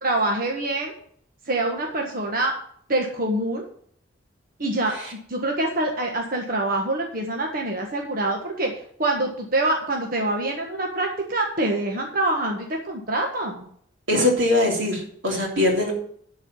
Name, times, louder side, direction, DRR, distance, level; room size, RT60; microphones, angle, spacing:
voice 1, 0.0-0.9 1.4-2.5 2.9-3.6 4.6-4.9 5.3-13.7, right 2 dB, 50° right, 1 dB, 1.4 m, -25 dB
voice 2, 14.1-15.9, left 1 dB, 90° right, 0 dB, 3.1 m, -21 dB
11.0 x 4.8 x 7.1 m, 0.62 s
head